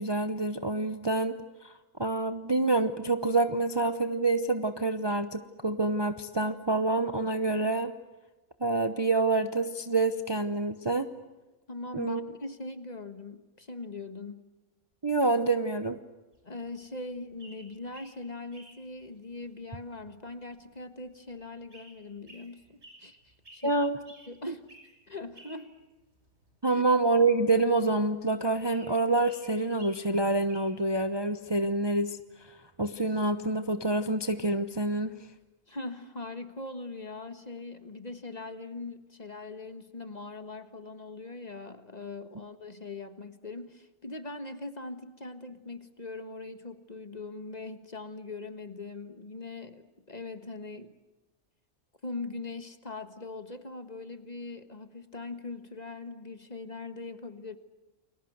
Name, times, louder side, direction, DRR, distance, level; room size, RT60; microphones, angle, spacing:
voice 1, 0.0-1.4 1.6-1.7 2.0-7.9 8.6-11.1 11.9-12.2 15.0-16.0 23.6-24.0 24.5-24.6 26.6-32.2 32.8-35.1, right 2 dB, 20° right, 9 dB, 0.9 m, -27 dB
voice 2, 11.7-14.5 16.4-23.8 24.3-24.7 25.1-25.7 26.7-26.8 35.7-50.9 52.0-57.6, left 3 dB, 30° left, 9 dB, 1.6 m, -41 dB
sound 1, 16.3-31.1, right 1 dB, 50° right, 5.9 m, -56 dB
29.5 x 22.0 x 8.0 m, 1.1 s
omnidirectional pair, 1.4 m